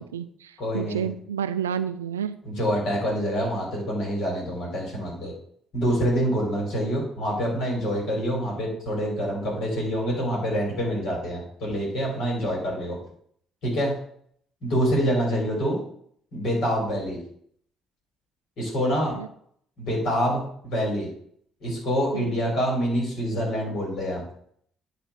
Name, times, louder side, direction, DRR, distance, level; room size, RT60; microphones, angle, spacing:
voice 1, 0.0-2.4 19.1-19.3 22.1-22.4, right 8 dB, 80° right, 13 dB, 0.3 m, -30 dB
voice 2, 0.6-1.1 2.5-5.3 5.7-13.0 13.6-14.0 14.6-15.8 16.3-17.2 18.6-19.2 19.8-21.1 21.6-24.2, equal, 55° left, -2 dB, 3.4 m, -26 dB
10.0 x 3.9 x 4.6 m, 0.64 s
figure-of-eight pair, 45°, 0 cm